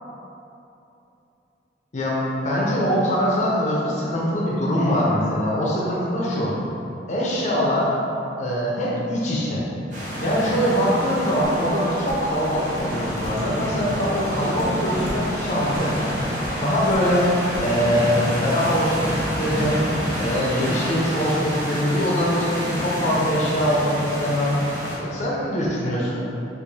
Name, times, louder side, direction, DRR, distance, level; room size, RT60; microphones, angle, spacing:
voice 1, 1.9-6.5 7.1-7.9 8.4-9.7 10.2-16.1 16.6-17.3 17.6-19.8 20.2-24.6 25.0-26.3, equal, 40° left, -5 dB, 0.5 m, -23 dB
sound 1, 9.9-25.0, equal, 40° right, 0.8 m, -28 dB
Dishes pots and pans, 11.4-17.8, equal, 80° right, 1.4 m, -38 dB
4.6 x 2.4 x 2.6 m, 2.8 s
head